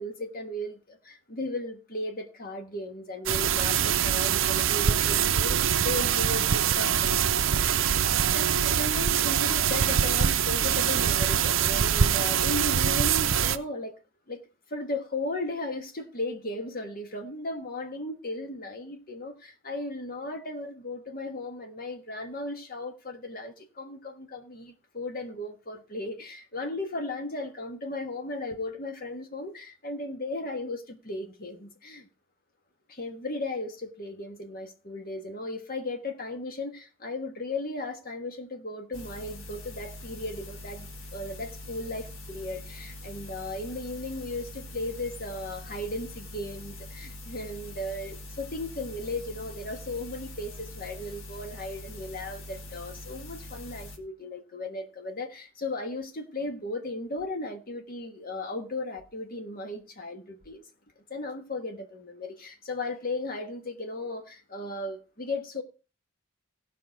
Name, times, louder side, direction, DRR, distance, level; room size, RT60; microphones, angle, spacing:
voice 1, 0.0-7.9 8.3-13.9 14.3-14.4 14.7-32.1 32.9-60.6 61.1-65.6, left 2 dB, 45° left, 1.4 m, -36 dB
sound 1, 3.3-13.6, right 8 dB, 70° right, 0.6 m, -24 dB
sound 2, 38.9-54.0, left 1 dB, 80° left, 1.6 m, -43 dB
17.0 x 5.6 x 4.5 m
head